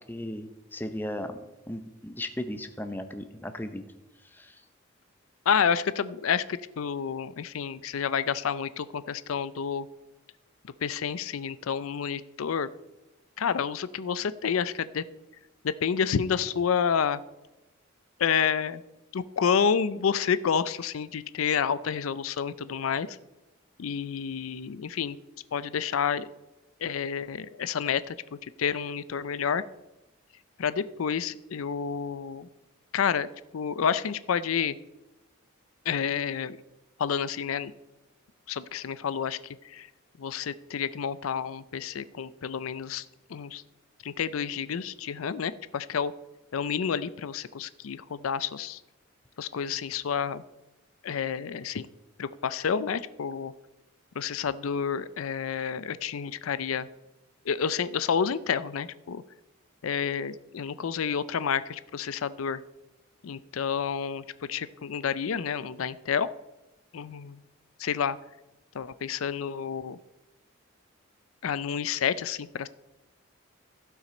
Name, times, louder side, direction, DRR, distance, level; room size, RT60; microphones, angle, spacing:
voice 1, 0.1-1.4 1.7-3.8 4.2-4.6, left 1 dB, 10° left, 8 dB, 0.7 m, -36 dB
voice 2, 5.5-9.9 10.8-12.7 13.4-15.0 15.6-17.2 18.2-18.8 19.1-23.2 23.8-25.2 25.5-26.3 26.8-28.2 28.4-29.6 30.6-32.5 32.9-33.3 33.5-34.8 35.9-36.6 37.0-37.7 38.5-39.4 39.6-39.9 40.2-43.6 44.0-46.1 46.5-48.8 49.4-50.4 51.0-51.9 52.2-53.5 54.2-56.9 57.5-59.2 59.8-62.6 63.2-66.3 66.9-67.4 67.8-68.2 68.7-70.0 71.4-72.7, left 7 dB, 85° left, 16 dB, 0.5 m, -29 dB
16.0 x 5.9 x 4.3 m, 1.0 s
head